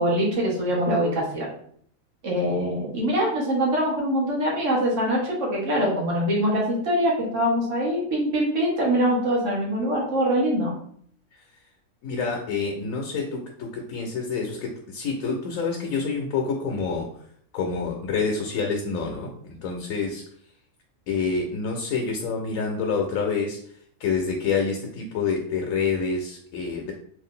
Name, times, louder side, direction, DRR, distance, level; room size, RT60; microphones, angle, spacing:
voice 1, 0.0-1.5 2.2-10.7, equal, 65° right, -3 dB, 1.4 m, -23 dB
voice 2, 12.0-17.1 17.5-20.2 21.1-23.6 24.0-26.9, left 5 dB, 80° left, 1 dB, 1.0 m, -27 dB
3.2 x 2.5 x 3.7 m, 0.62 s
omnidirectional pair, 1.4 m